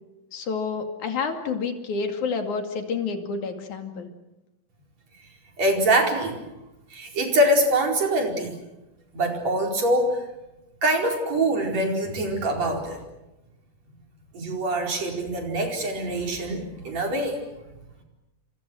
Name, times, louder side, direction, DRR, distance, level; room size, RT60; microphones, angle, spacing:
voice 1, 0.3-4.1, left 5 dB, 75° left, 5 dB, 3.9 m, -29 dB
voice 2, 5.6-6.4 6.9-8.6 9.1-10.2 10.8-13.0 14.3-17.4, right 1 dB, 60° right, 2 dB, 5.8 m, -24 dB
29.5 x 26.5 x 6.4 m, 0.98 s
omnidirectional pair, 3.4 m